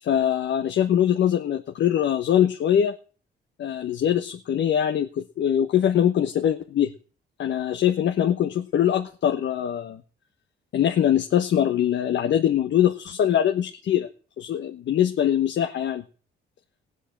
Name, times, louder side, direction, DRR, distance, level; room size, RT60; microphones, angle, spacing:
voice 1, 0.0-2.9 3.6-6.9 7.4-10.0 10.7-14.1 14.4-16.0, left 10 dB, 65° left, 5 dB, 1.3 m, -22 dB
18.5 x 8.0 x 7.5 m, 0.39 s
cardioid pair, 90°, 20 cm